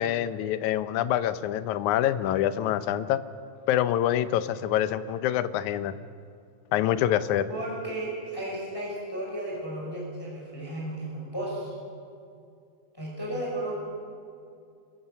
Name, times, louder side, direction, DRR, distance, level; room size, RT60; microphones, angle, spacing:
voice 1, 0.0-3.2 3.7-5.9 6.7-7.5, left 11 dB, 75° left, 13 dB, 2.0 m, -26 dB
voice 2, 7.5-11.7 12.9-13.8, right 1 dB, 5° left, -5 dB, 5.7 m, -34 dB
26.0 x 15.0 x 6.9 m, 2.4 s
omnidirectional pair, 3.8 m